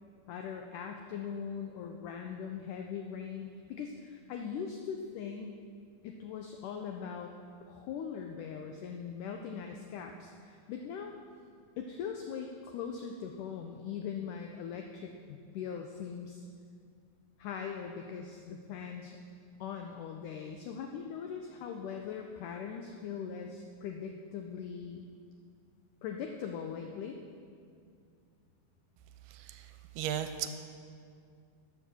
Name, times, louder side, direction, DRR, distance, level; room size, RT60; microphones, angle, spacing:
voice 1, 0.3-5.6 6.0-7.3 7.7-11.1 11.8-16.5 17.4-19.2 19.6-25.1 26.0-27.2, left 7 dB, 85° left, 3 dB, 1.8 m, -40 dB
voice 2, 29.2-30.5, right 10 dB, 85° right, 9 dB, 2.5 m, -37 dB
13.5 x 7.7 x 6.1 m, 2.3 s
omnidirectional pair, 4.5 m